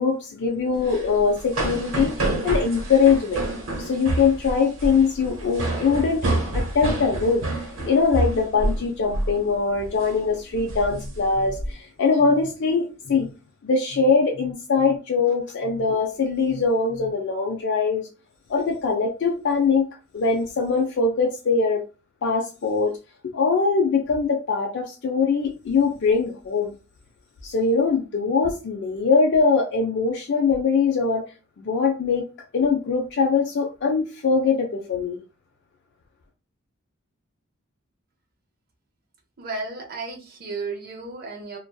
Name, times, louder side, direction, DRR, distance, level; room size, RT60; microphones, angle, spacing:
voice 1, 0.0-2.1 2.4-3.4 3.8-6.2 6.5-7.5 7.9-13.3 13.6-18.1 18.5-19.9 20.1-21.8 22.2-23.0 23.2-26.7 27.4-31.2 31.6-35.2, left 4 dB, 60° left, 0.4 m, -22 dB
sound 1, 0.8-8.9 9.1-9.4 9.8-10.1 10.5-11.7, right 2 dB, 85° right, 1.0 m, -28 dB
voice 2, 39.4-41.6, right 3 dB, 50° right, 0.6 m, -33 dB
2.5 x 2.2 x 2.2 m
head